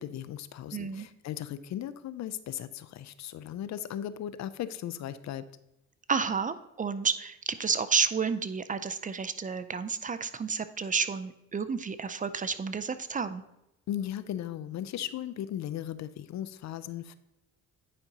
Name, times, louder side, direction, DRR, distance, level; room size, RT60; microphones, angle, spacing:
voice 1, 0.0-5.4 13.9-17.1, left 11 dB, 65° left, 14 dB, 0.5 m, -37 dB
voice 2, 0.7-1.1 6.1-13.4, right 5 dB, 25° right, 12 dB, 0.4 m, -31 dB
9.6 x 5.2 x 2.8 m, 0.89 s
cardioid pair, 90°, 30 cm